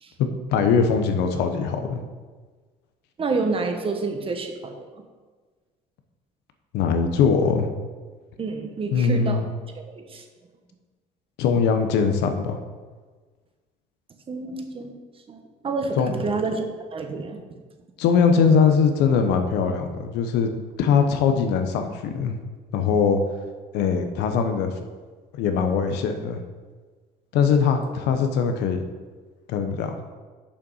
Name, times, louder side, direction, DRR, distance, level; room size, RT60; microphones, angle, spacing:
voice 1, 0.2-2.0 6.7-7.7 8.9-9.4 11.4-12.6 16.0-16.1 18.0-20.5 20.8-22.4 22.7-23.2 23.7-24.7 25.4-26.4 27.3-28.8 29.5-30.0, left 6 dB, 90° left, 7 dB, 0.9 m, -21 dB
voice 2, 3.2-4.8 8.4-9.5 9.8-10.2 14.3-14.9 15.3-16.6 16.9-17.5, right 3 dB, 35° right, 5 dB, 1.1 m, -28 dB
6.8 x 5.7 x 5.5 m, 1.4 s
cardioid pair, 110°, 17 cm